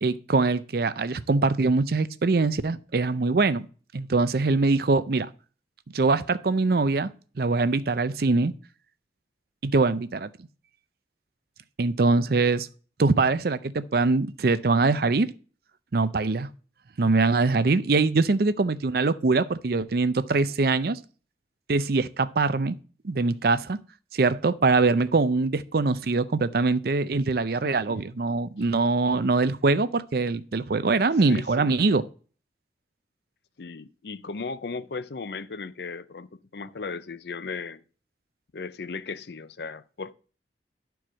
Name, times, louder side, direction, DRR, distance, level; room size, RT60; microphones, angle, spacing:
voice 1, 0.0-3.7 3.9-5.3 5.9-7.1 7.4-8.5 9.6-10.3 11.8-12.7 13.0-15.3 15.9-16.5 17.0-21.0 21.7-22.7 23.0-23.8 24.1-32.1, right 3 dB, 55° right, 0.5 m, -23 dB
voice 2, 27.6-28.0 28.6-28.7 31.3-31.7 33.6-37.8 38.5-40.1, left 4 dB, 65° left, 0.5 m, -36 dB
11.5 x 4.6 x 6.2 m
head